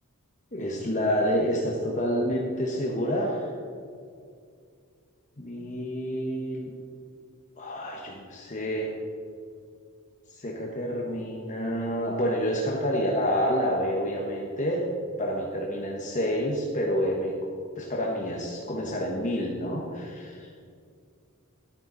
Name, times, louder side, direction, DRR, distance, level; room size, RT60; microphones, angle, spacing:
voice 1, 0.5-3.5 5.4-6.7 7.6-8.9 10.3-14.8 15.2-17.3 17.7-20.5, equal, 35° left, -2 dB, 1.4 m, -28 dB
14.0 x 11.5 x 4.1 m, 2.3 s
head